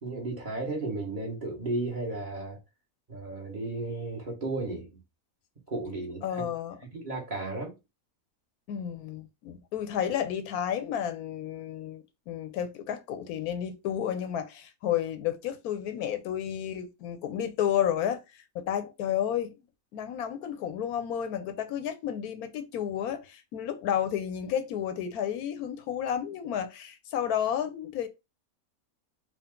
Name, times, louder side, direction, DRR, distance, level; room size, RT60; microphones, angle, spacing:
voice 1, 0.0-2.6 3.1-5.0 5.7-6.5 6.9-7.8, right 2 dB, 35° right, 1.3 m, -34 dB
voice 2, 6.2-6.8 8.7-18.2 18.5-19.5 19.9-28.1, left 9 dB, 85° left, 1.2 m, -31 dB
3.8 x 2.4 x 3.7 m
omnidirectional pair, 1.5 m